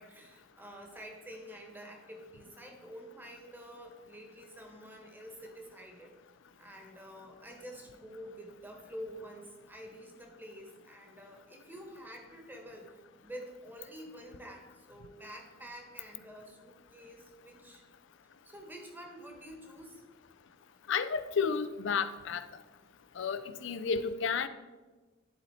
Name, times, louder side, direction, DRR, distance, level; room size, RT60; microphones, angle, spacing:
voice 1, 0.0-6.1 6.6-17.8 18.4-20.0, equal, 10° right, 1 dB, 1.2 m, -48 dB
voice 2, 20.9-22.4 23.2-24.5, left 6 dB, 65° left, 12 dB, 0.5 m, -31 dB
10.5 x 4.2 x 4.1 m, 1.3 s
head